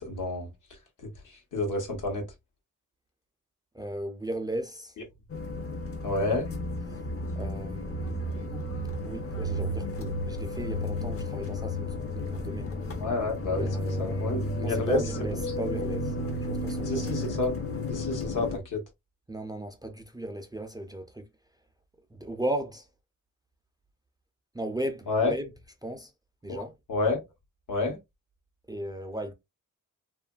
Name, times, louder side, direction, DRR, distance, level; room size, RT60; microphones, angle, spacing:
voice 1, 0.1-0.5 1.0-1.1 1.5-2.2 6.0-6.5 13.0-13.7 14.0-15.0 16.8-17.5 17.9-18.8 25.1-25.3 26.5-27.2 27.7-28.0, left 3 dB, 75° left, 1.1 m, -29 dB
voice 2, 3.7-4.9 7.4-8.6 9.0-12.7 13.5-14.3 14.6-16.1 16.5-17.1 19.3-21.3 22.1-22.9 24.5-25.5 25.8-26.1 26.4-26.7 28.7-29.3, right 1 dB, 15° right, 0.3 m, -36 dB
sound 1, 5.3-18.6, left 1 dB, 45° left, 0.6 m, -33 dB
2.9 x 2.4 x 2.2 m
wide cardioid pair, 135°, 31 cm